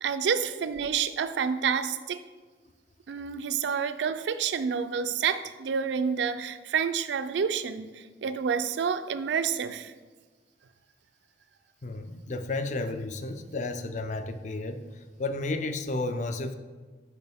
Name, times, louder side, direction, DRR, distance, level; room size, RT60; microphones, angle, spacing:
voice 1, 0.0-2.2 3.1-9.9, right 6 dB, 90° right, 12 dB, 0.4 m, -29 dB
voice 2, 11.8-14.8 15.2-16.6, left 2 dB, 45° left, 9 dB, 0.4 m, -32 dB
6.6 x 5.4 x 3.5 m, 1.4 s
head